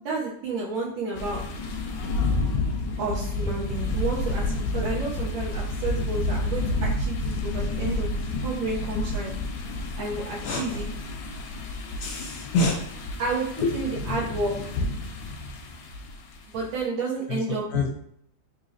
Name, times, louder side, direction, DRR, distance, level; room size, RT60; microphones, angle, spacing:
voice 1, 0.0-1.4 3.0-9.3 10.0-10.8 13.2-13.5 13.7-14.5 16.5-17.7, right 3 dB, 80° right, -6 dB, 1.4 m, -31 dB
sound 1, 1.1-16.4, left 2 dB, 90° left, 1.4 m, -30 dB
voice 2, 10.4-10.8 12.0-12.8 13.6-13.7 17.3-17.4 17.7-17.9, left 3 dB, 70° left, 1 dB, 1.0 m, -26 dB
4.0 x 3.0 x 2.5 m, 0.70 s
omnidirectional pair, 2.1 m